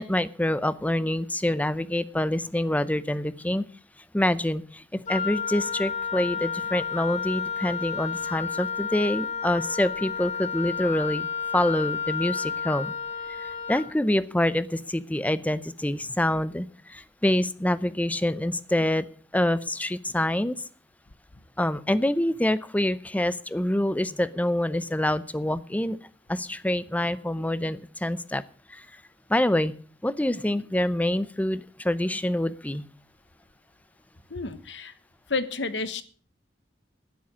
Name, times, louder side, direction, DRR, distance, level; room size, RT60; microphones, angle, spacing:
voice 1, 0.0-3.6 4.1-11.3 11.5-12.9 13.4-19.1 19.3-20.6 21.6-26.0 26.3-28.4 28.7-28.9 29.3-29.7 30.0-32.9, left 1 dB, 10° left, 15 dB, 0.6 m, -26 dB
Wind instrument woodwind instrument, 5.1-13.9, left 6 dB, 40° left, 1.4 m, -31 dB
voice 2, 34.3-34.9 35.3-36.0, left 3 dB, 75° left, 12 dB, 1.2 m, -30 dB
11.5 x 10.0 x 6.3 m, 0.42 s
head